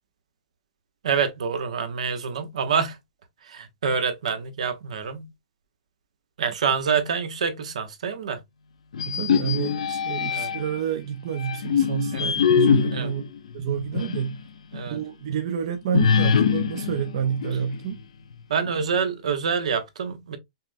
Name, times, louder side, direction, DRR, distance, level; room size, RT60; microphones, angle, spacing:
voice 1, 1.0-3.0 3.4-5.3 6.4-8.4 10.3-10.5 12.1-12.3 12.9-13.1 14.7-15.0 18.5-20.4, right 6 dB, 85° right, 0.9 m, -26 dB
sound 1, 8.9-10.8 11.4-14.4 14.7-14.8 15.9-18.0, left 7 dB, 90° left, 0.5 m, -23 dB
voice 2, 9.1-13.3 13.5-14.4 14.9-18.0, right 8 dB, 60° right, 0.6 m, -28 dB
5.6 x 2.1 x 2.6 m
hypercardioid pair, 155°, 3 cm